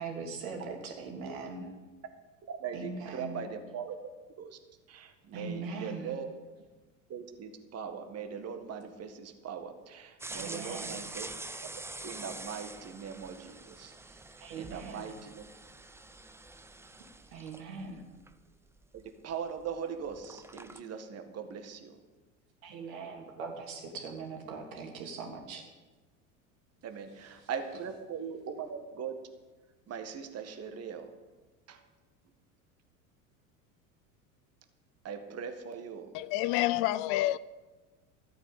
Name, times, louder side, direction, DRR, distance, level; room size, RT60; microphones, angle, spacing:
voice 1, 0.0-1.7 2.7-3.4 5.3-6.1 10.3-11.0 14.4-15.1 17.3-18.0 22.6-25.6 27.2-27.5, right 4 dB, 70° right, 3.4 m, -41 dB
voice 2, 2.5-4.0 4.4-4.6 4.9-6.3 7.1-11.3 12.0-14.2 14.6-15.5 18.9-22.0 26.8-29.2 29.9-31.1 31.7-31.8 35.0-36.1, right 7 dB, 35° right, 1.9 m, -40 dB
sound 1, 10.2-19.8 20.0-20.8, right 2 dB, 5° right, 0.7 m, -46 dB
voice 3, 36.1-37.4, left 16 dB, 55° left, 0.6 m, -28 dB
13.0 x 8.8 x 8.6 m
hypercardioid pair, 85°, 42 cm